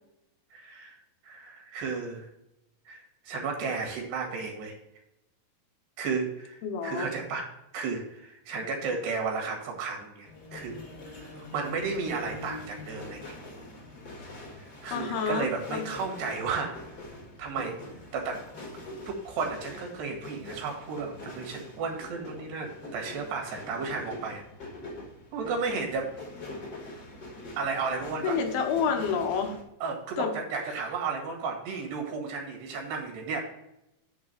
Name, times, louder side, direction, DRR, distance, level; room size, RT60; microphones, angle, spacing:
voice 1, 0.5-2.3 2.9-4.8 6.0-10.8 11.1-13.4 14.6-16.7 17.4-17.8 18.1-18.4 19.1-24.4 25.3-26.1 27.6-28.4 29.8-33.4, right 4 dB, 80° right, 1 dB, 3.9 m, -33 dB
voice 2, 6.6-7.1 14.9-15.9 28.2-29.6 30.2-30.3, left 6 dB, 75° left, 5 dB, 2.8 m, -29 dB
sound 1, 10.2-29.6, left 1 dB, 55° left, 1.0 m, -44 dB
10.5 x 3.6 x 6.7 m, 0.85 s
omnidirectional pair, 4.7 m